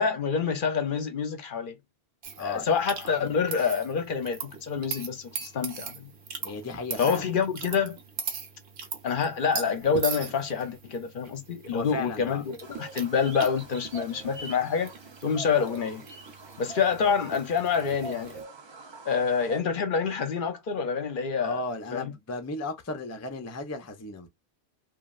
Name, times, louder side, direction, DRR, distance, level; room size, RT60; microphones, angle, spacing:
voice 1, 0.0-1.8 2.4-6.1 7.0-8.0 9.0-14.9 15.2-16.0 16.6-18.4 19.0-21.6 21.9-22.1, left 6 dB, 60° left, 0.7 m, -27 dB
sound 1, 2.2-18.4, right 6 dB, 70° right, 1.0 m, -40 dB
voice 2, 2.4-2.7 6.4-7.2 11.7-12.4 21.4-24.3, left 2 dB, 25° left, 0.4 m, -35 dB
sound 2, 12.6-19.6, right 3 dB, 35° right, 0.5 m, -44 dB
3.0 x 2.4 x 2.3 m
omnidirectional pair, 1.1 m